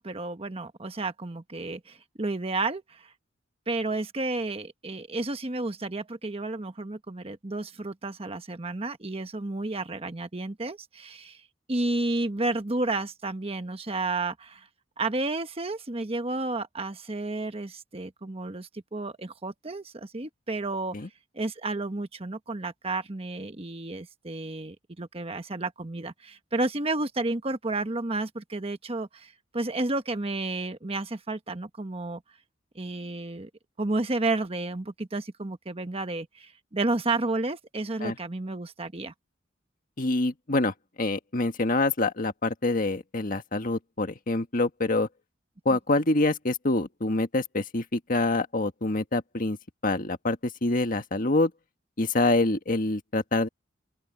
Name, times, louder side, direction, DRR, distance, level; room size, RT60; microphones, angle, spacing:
voice 1, 0.0-3.1 3.7-11.4 11.7-14.7 15.0-21.0 21.3-32.2 32.7-33.5 33.8-39.1 45.7-45.8, right 2 dB, 30° right, 1.1 m, -31 dB
voice 2, 40.0-45.1 45.6-49.6 49.8-51.5 52.0-53.5, left 2 dB, 45° left, 1.6 m, -26 dB
open air
head